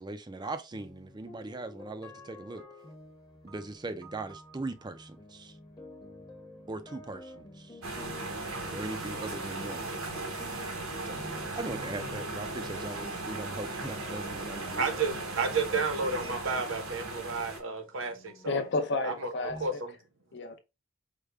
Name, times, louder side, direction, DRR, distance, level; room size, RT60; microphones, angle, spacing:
voice 1, 0.0-2.7 3.4-5.6 6.7-7.8 8.7-9.9 11.0-14.9, right 2 dB, 20° right, 0.4 m, -40 dB
sound 1, 0.7-19.7, left 2 dB, 20° left, 0.9 m, -50 dB
sound 2, 7.8-17.6, right 2 dB, 90° right, 1.1 m, -37 dB
voice 2, 14.8-18.6 19.0-20.0, right 4 dB, 65° right, 0.8 m, -32 dB
voice 3, 18.4-19.8 20.3-20.6, left 3 dB, 55° left, 0.7 m, -31 dB
4.9 x 2.2 x 3.4 m
head